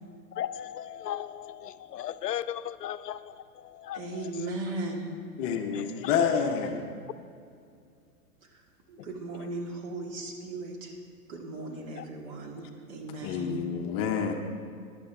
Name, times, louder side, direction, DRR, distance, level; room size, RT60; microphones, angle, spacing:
voice 1, 0.3-4.4 5.7-6.2 9.0-9.1 9.4-9.5 12.0-12.1, left 10 dB, 85° left, 13 dB, 0.6 m, -37 dB
voice 2, 3.9-5.1 8.4-11.0 11.3-13.6, right 2 dB, 45° right, 1 dB, 2.3 m, -37 dB
voice 3, 5.4-6.9 13.2-14.3, left 7 dB, 30° left, 4 dB, 0.8 m, -28 dB
15.0 x 11.0 x 3.5 m, 2.3 s
hypercardioid pair, 115°, 47 cm